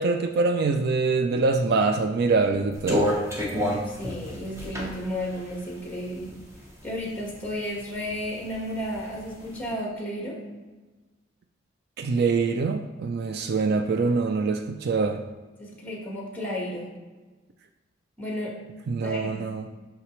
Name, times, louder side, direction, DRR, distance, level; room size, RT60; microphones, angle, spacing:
voice 1, 0.0-3.1 12.0-15.2 18.9-19.6, right 4 dB, 50° right, 6 dB, 0.3 m, -24 dB
sound 1, 2.7-6.7 7.2-8.2 8.5-9.5, left 1 dB, 15° right, 0.8 m, -29 dB
voice 2, 3.8-6.3 6.8-10.4 15.6-16.9 18.2-18.5 19.0-19.5, equal, 10° left, -3 dB, 1.4 m, -33 dB
5.8 x 5.7 x 3.1 m, 1.3 s
head